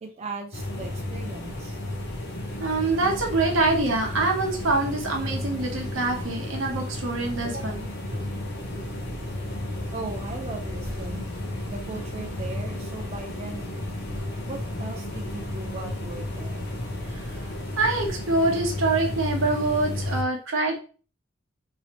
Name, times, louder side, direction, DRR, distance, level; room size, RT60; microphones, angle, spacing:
voice 1, 0.0-1.8 9.9-11.3 11.7-13.6 14.5-16.7, right 3 dB, 30° right, 3 dB, 0.4 m, -38 dB
sound 1, 0.5-20.2, left 1 dB, 55° left, 0.7 m, -33 dB
Bus, 2.5-18.1, equal, 20° left, 1.5 m, -43 dB
voice 2, 2.6-8.2 17.8-20.8, right 2 dB, 75° right, 2 dB, 0.9 m, -25 dB
3.1 x 2.7 x 2.8 m, 0.38 s
head